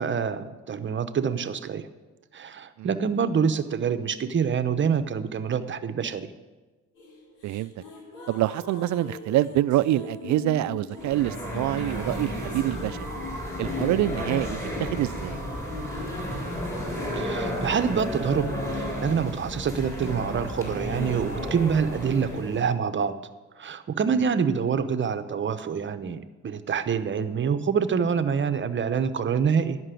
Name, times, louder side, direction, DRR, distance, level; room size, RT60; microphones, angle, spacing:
voice 1, 0.0-1.9 2.3-6.3 17.1-23.1 23.6-29.8, right 6 dB, 40° right, 0.8 m, -26 dB
sound 1, 7.0-14.2, left 2 dB, 85° left, 2.4 m, -42 dB
voice 2, 8.3-13.0 13.6-15.4, right 14 dB, 70° right, 0.4 m, -26 dB
sound 2, 11.0-22.6, equal, 10° left, 3.9 m, -32 dB
11.5 x 6.0 x 9.1 m
cardioid pair, 90°, 30 cm